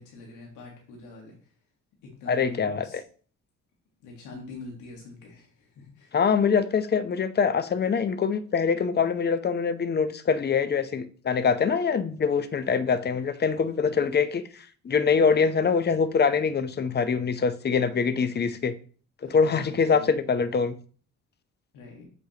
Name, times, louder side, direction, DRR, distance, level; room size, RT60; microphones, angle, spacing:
voice 1, 0.0-1.5 2.0-3.0 4.0-6.2 14.0-14.1 19.2-20.1 21.7-22.0, left 3 dB, 90° left, 1.5 m, -44 dB
voice 2, 2.3-3.0 6.1-18.7 19.3-20.7, left 5 dB, 35° left, 0.6 m, -24 dB
7.9 x 4.7 x 2.8 m
cardioid pair, 90°, 30 cm